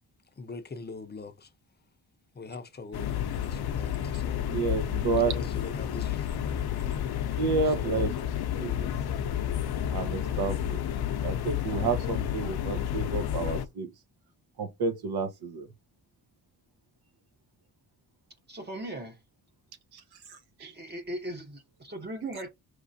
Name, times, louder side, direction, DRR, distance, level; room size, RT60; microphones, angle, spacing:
voice 1, 0.4-1.5 2.3-4.6 5.3-6.9 7.6-8.3, left 4 dB, 25° left, 0.5 m, -43 dB
sound 1, 2.9-13.7, left 10 dB, 75° left, 0.6 m, -31 dB
voice 2, 4.5-5.3 7.4-8.1 8.6-8.9 9.9-10.8 11.2-13.9 14.6-15.7 19.9-20.0 20.3-20.7, right 4 dB, 80° right, 1.0 m, -30 dB
voice 3, 18.5-19.2 20.6-22.5, right 1 dB, 25° right, 0.7 m, -38 dB
5.1 x 3.2 x 2.6 m
wide cardioid pair, 150°, 38 cm